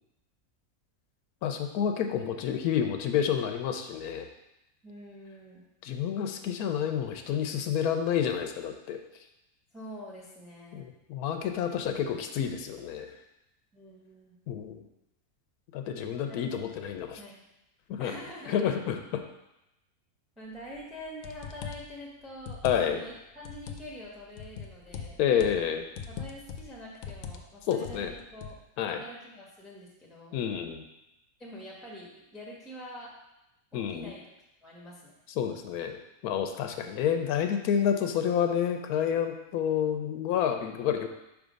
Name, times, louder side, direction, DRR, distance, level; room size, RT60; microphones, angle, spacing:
voice 1, 1.4-4.3 5.8-9.0 10.7-13.1 14.5-14.8 15.7-17.2 17.9-18.1 18.5-19.2 22.6-23.0 25.2-25.8 27.7-28.1 28.8-29.0 30.3-30.8 33.7-34.1 35.4-36.0 36.2-41.1, left 8 dB, 90° left, 6 dB, 1.1 m, -29 dB
voice 2, 4.8-5.6 9.7-10.8 13.7-14.4 16.0-16.5 17.2-17.4 18.0-18.7 20.4-25.2 26.1-28.6 29.0-30.4 31.4-33.1 33.7-34.3 34.6-35.1, equal, ahead, -3 dB, 0.9 m, -45 dB
sound 1, 20.7-20.8 21.2-21.9 22.4-23.1 23.4-23.9 24.4-25.7 26.0-26.7 27.0-27.4 27.7-28.6, left 6 dB, 70° left, 0.9 m, -41 dB
5.3 x 3.6 x 5.1 m, 0.90 s
omnidirectional pair, 1.5 m